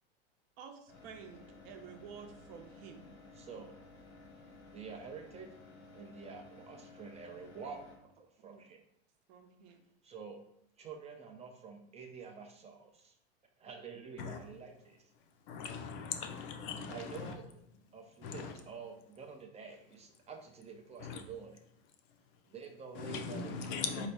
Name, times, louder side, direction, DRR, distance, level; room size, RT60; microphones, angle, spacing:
voice 1, 0.6-3.1 8.4-8.6 9.3-9.8 16.8-17.5, right 7 dB, 60° right, 5 dB, 0.8 m, -52 dB
sound 1, 0.9-8.0, left 3 dB, 80° left, 1.4 m, -55 dB
voice 2, 3.4-3.7 4.7-5.5 5.9-7.9 8.4-8.8 10.0-10.4 10.8-13.1 13.6-15.0 16.9-17.5 17.9-21.6 22.5-23.8, right 5 dB, 20° right, 3 dB, 0.4 m, -48 dB
voice 3, 15.5-17.3 18.2-18.5 21.0-21.2 23.0-24.1, left 6 dB, 55° left, 6 dB, 0.6 m, -40 dB
4.1 x 2.8 x 3.3 m, 0.72 s
supercardioid pair, 120°, 34 cm